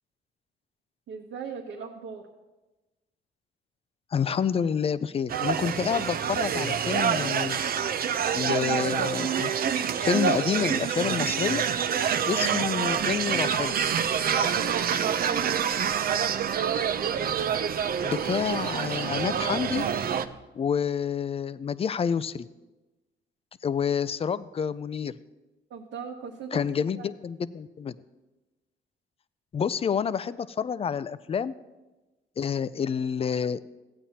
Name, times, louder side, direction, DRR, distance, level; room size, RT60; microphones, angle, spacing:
voice 1, 1.1-2.2 15.0-15.6 25.7-26.6 26.9-27.1, right 6 dB, 70° right, -1 dB, 1.0 m, -38 dB
voice 2, 4.1-7.6 8.3-9.5 10.0-11.6 12.3-13.7 18.0-19.8 20.5-22.5 23.6-25.2 26.5-28.0 29.5-31.6 32.4-33.6, left 7 dB, 30° left, 16 dB, 0.3 m, -28 dB
sound 1, 5.3-20.2, right 8 dB, 50° right, 0.5 m, -27 dB
sound 2, 12.8-20.4, right 3 dB, 15° right, 0.7 m, -49 dB
15.0 x 8.8 x 2.8 m, 1.1 s
cardioid pair, 90°, 20 cm